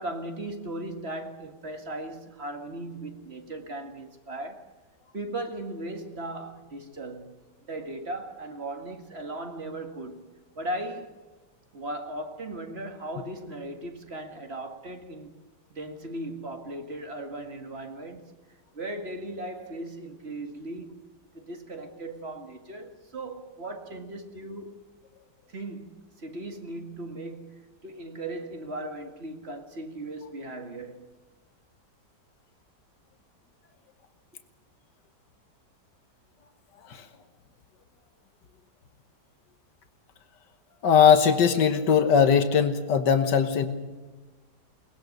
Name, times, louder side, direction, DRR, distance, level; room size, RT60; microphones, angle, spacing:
voice 1, 0.0-4.7 5.1-7.3 7.7-11.1 11.7-15.4 15.7-18.3 18.7-21.0 21.3-24.7 25.5-31.1, right 1 dB, 40° right, 2.1 m, -37 dB
voice 2, 40.8-43.7, left 7 dB, 85° left, 1.9 m, -20 dB
23.0 x 20.0 x 6.6 m
omnidirectional pair, 1.8 m